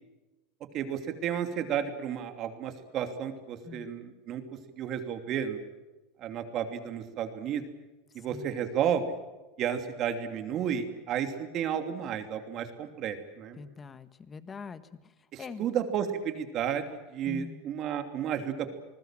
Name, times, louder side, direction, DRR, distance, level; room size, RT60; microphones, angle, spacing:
voice 1, 0.7-4.4 4.8-5.6 6.2-7.6 8.1-9.0 9.6-13.6 15.3-18.8, right 9 dB, 40° right, 7 dB, 2.9 m, -32 dB
voice 2, 13.6-14.8 15.4-15.7 17.2-17.6, left 5 dB, 20° left, 13 dB, 1.5 m, -43 dB
28.0 x 20.0 x 7.6 m, 1.1 s
supercardioid pair, 135°, 0 cm